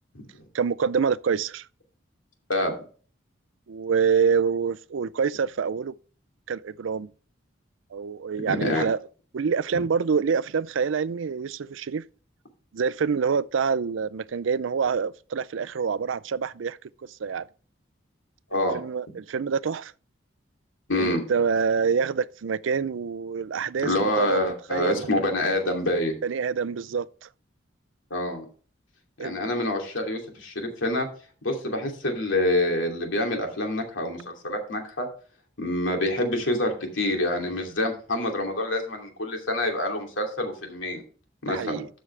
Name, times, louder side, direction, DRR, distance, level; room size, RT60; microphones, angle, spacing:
voice 1, 0.5-1.7 3.7-5.9 6.5-7.1 7.9-9.0 9.3-12.0 12.7-17.4 18.7-19.9 21.0-24.4 24.7-25.1 26.2-27.3 29.2-29.4 41.5-41.9, right 6 dB, 80° right, 0.4 m, -26 dB
voice 2, 2.5-2.8 8.4-8.8 9.7-9.8 18.5-18.8 20.9-21.2 23.8-26.2 28.1-28.4 29.2-31.1 31.4-35.1 35.6-41.0 41.4-41.8, left 1 dB, 80° left, 2.7 m, -26 dB
13.0 x 6.3 x 3.3 m
head